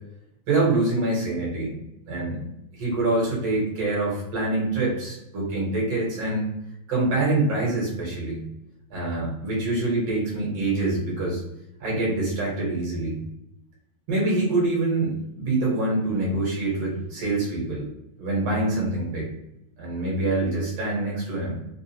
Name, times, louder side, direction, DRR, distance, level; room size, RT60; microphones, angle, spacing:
voice 1, 0.5-1.8 2.1-2.4 2.7-6.5 6.9-8.4 8.9-11.4 11.8-13.2 14.1-17.9 18.2-19.3 19.8-21.6, right 2 dB, 60° right, -4 dB, 2.0 m, -25 dB
5.1 x 2.4 x 2.7 m, 0.86 s
omnidirectional pair, 3.4 m